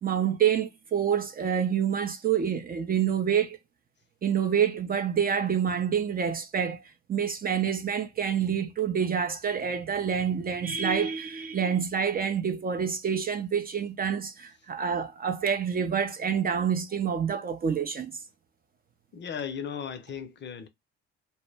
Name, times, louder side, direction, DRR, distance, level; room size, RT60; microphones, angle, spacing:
voice 1, 0.0-3.6 4.2-6.8 7.1-18.1, right 7 dB, 30° right, 0.4 m, -27 dB
voice 2, 19.1-20.7, left 7 dB, 35° left, 0.6 m, -36 dB
2.1 x 2.0 x 3.2 m
hypercardioid pair, 65°, 31 cm